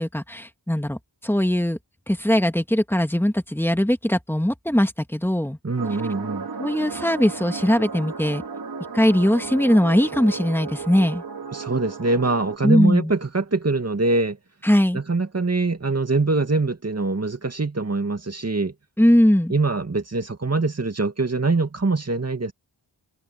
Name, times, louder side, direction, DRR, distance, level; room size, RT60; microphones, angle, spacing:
voice 1, 0.0-1.8 2.1-5.6 6.6-8.4 8.9-11.2 12.6-13.1 14.6-15.0 19.0-19.5, equal, 5° left, 2.2 m, -20 dB
voice 2, 5.6-6.5 11.5-14.4 14.9-18.7 19.5-22.5, right 3 dB, 35° right, 2.3 m, -23 dB
sound 1, 5.8-12.6, right 5 dB, 55° right, 2.5 m, -34 dB
wide cardioid pair, 70°, 42 cm